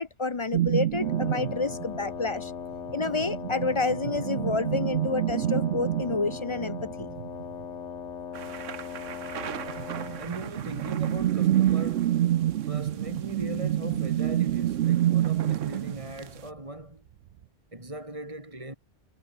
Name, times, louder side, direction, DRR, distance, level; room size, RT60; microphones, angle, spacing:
voice 1, 0.0-2.5 2.9-7.1, left 3 dB, 30° left, 0.6 m, -29 dB
sound 1, 0.5-2.3 2.8-7.6 9.7-16.3, right 12 dB, 70° right, 0.8 m, -28 dB
Wind instrument woodwind instrument, 1.0-10.3, left 7 dB, 70° left, 1.5 m, -39 dB
sound 2, 8.3-16.5, right 9 dB, 90° right, 1.3 m, -43 dB
voice 2, 10.2-12.2 12.6-17.0 17.7-18.7, right 1 dB, 25° right, 3.7 m, -39 dB
omnidirectional pair, 1.2 m